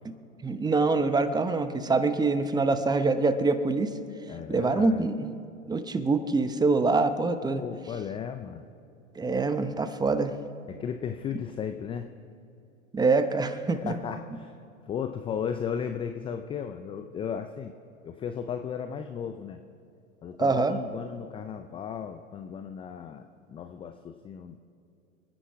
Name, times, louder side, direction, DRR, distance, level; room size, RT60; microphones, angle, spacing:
voice 1, 0.4-3.9 4.5-5.3 5.7-7.6 9.1-10.3 12.9-13.9 20.4-20.8, right 3 dB, 10° right, 10 dB, 0.8 m, -25 dB
voice 2, 4.3-5.0 7.4-8.6 10.7-12.1 13.8-14.5 14.9-17.7 18.0-19.6 20.2-24.6, left 7 dB, 15° left, 8 dB, 0.4 m, -35 dB
28.0 x 10.0 x 4.7 m, 2.6 s
hypercardioid pair, 105°, 40 cm